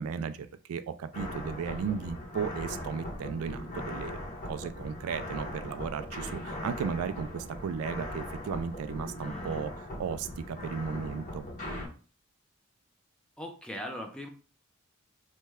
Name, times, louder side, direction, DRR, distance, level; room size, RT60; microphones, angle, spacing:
voice 1, 0.0-4.2 4.5-11.4, right 6 dB, 85° right, 13 dB, 0.3 m, -35 dB
sound 1, 1.1-11.9, left 1 dB, 35° left, 1.1 m, -39 dB
voice 2, 9.2-9.6 13.4-14.3, left 1 dB, 5° left, 3 dB, 0.4 m, -40 dB
3.1 x 2.1 x 3.4 m, 0.37 s
head